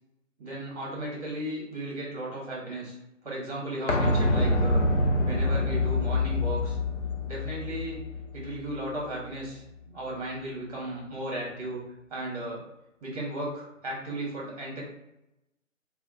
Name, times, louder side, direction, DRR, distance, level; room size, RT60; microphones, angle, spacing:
voice 1, 0.4-3.0 3.2-4.9 5.2-6.8 7.3-8.0 8.3-11.8 12.1-12.6 13.0-14.8, right 1 dB, 30° right, -3 dB, 1.2 m, -35 dB
sound 1, 3.9-9.5 9.8-9.9, left 2 dB, 65° left, 0.6 m, -27 dB
4.2 x 2.3 x 2.4 m, 0.87 s
figure-of-eight pair, 155°, 39 cm